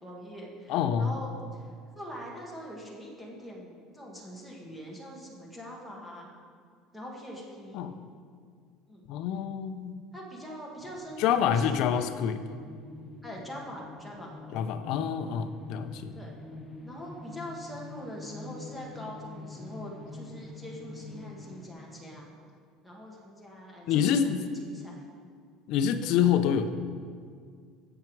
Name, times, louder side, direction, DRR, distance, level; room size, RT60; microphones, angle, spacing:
voice 1, 0.0-6.3 6.9-7.8 8.9-9.0 10.1-11.6 13.2-14.3 16.1-16.3 16.8-22.4 22.8-24.3 24.6-25.0, equal, ahead, -3 dB, 1.5 m, -43 dB
voice 2, 0.7-1.1 7.7-8.0 9.1-9.9 11.2-12.4 14.5-16.1 23.9-24.4 25.7-26.7, left 8 dB, 50° left, 9 dB, 0.6 m, -27 dB
sound 1, 10.8-21.7, left 2 dB, 15° left, 0.7 m, -45 dB
15.5 x 5.9 x 4.7 m, 2.1 s
cardioid pair, 175°, 0 cm